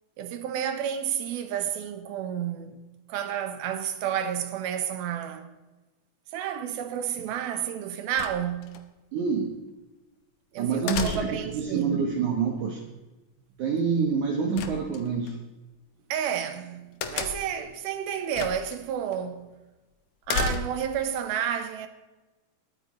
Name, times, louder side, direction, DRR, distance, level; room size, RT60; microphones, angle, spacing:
voice 1, 0.2-2.8 3.1-5.5 6.3-8.7 10.5-12.1 16.1-19.5 20.3-21.9, right 9 dB, 80° right, 2.8 m, -31 dB
sound 1, 8.2-8.8 10.9-11.6 14.6-15.3 17.0-17.6 18.3-18.8 19.1-19.2 20.3-21.0, left 6 dB, 70° left, 1.7 m, -32 dB
voice 2, 9.1-9.5 10.6-12.8 13.6-15.4, right 5 dB, 65° right, 2.3 m, -27 dB
22.0 x 9.0 x 3.1 m
omnidirectional pair, 4.3 m